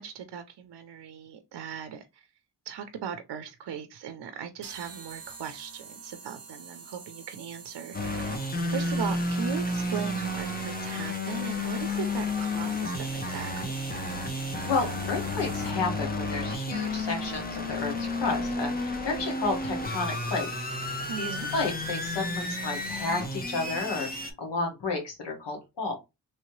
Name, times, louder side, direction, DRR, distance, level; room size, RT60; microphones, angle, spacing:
voice 1, 0.0-2.3 2.7-8.3 8.7-13.8 21.1-21.5, right 7 dB, 70° right, 0.6 m, -38 dB
sound 1, 4.6-16.0, right 5 dB, 35° right, 0.8 m, -47 dB
sound 2, 7.9-24.3, left 2 dB, 20° left, 0.8 m, -31 dB
voice 2, 14.7-20.5 20.8-26.0, left 3 dB, 80° left, 1.3 m, -32 dB
3.2 x 2.8 x 3.0 m
wide cardioid pair, 90°, 42 cm